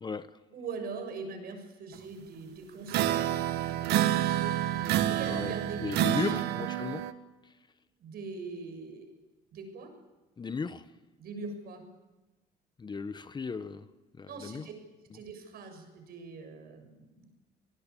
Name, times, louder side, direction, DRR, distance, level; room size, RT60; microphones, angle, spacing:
voice 1, 0.0-0.4 5.3-7.1 7.4-7.5 10.4-10.9 12.8-13.9 14.1-14.7, left 4 dB, 25° left, 1.1 m, -36 dB
voice 2, 0.5-6.5 8.0-9.1 9.5-9.9 11.2-11.9 14.3-14.7 15.1-17.3, right 4 dB, 65° right, 7.1 m, -42 dB
sound 1, 2.9-7.1, right 12 dB, 80° right, 1.4 m, -28 dB
27.0 x 19.5 x 8.6 m
cardioid pair, 110°, 17 cm